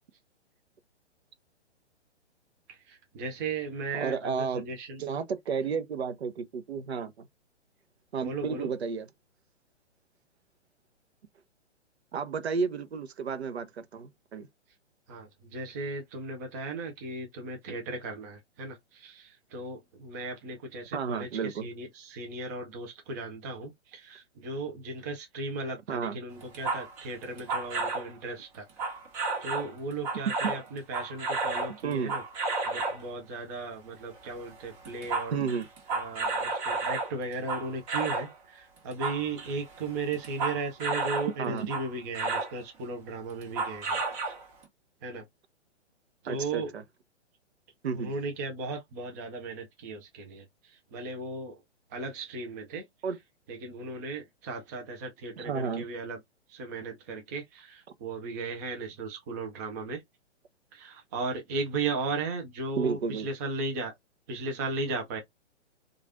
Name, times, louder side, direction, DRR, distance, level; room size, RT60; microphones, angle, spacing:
voice 1, 2.7-5.0 8.2-8.7 15.1-28.7 29.4-32.2 32.6-35.4 35.9-44.0 44.3-44.4 45.0-45.2 46.2-46.7 47.9-51.6 51.9-52.8 53.5-56.2 56.5-60.0 60.7-63.9 64.3-65.2, right 3 dB, 15° right, 0.4 m, -36 dB
voice 2, 3.9-4.7 5.0-7.3 8.1-9.1 12.1-14.5 20.9-21.7 25.9-26.2 31.8-32.2 35.3-35.7 41.4-41.7 46.3-46.8 47.8-48.1 53.0-53.2 55.4-55.8 62.8-63.3, right 6 dB, 65° right, 0.6 m, -32 dB
sound 1, 26.4-28.1 28.8-29.7 30.0-33.1 34.2-34.4 34.7-38.3 38.8-41.3 41.7-42.5 43.4-44.6, right 3 dB, 30° right, 1.4 m, -32 dB
3.1 x 2.4 x 2.4 m
figure-of-eight pair, 130°, 35 cm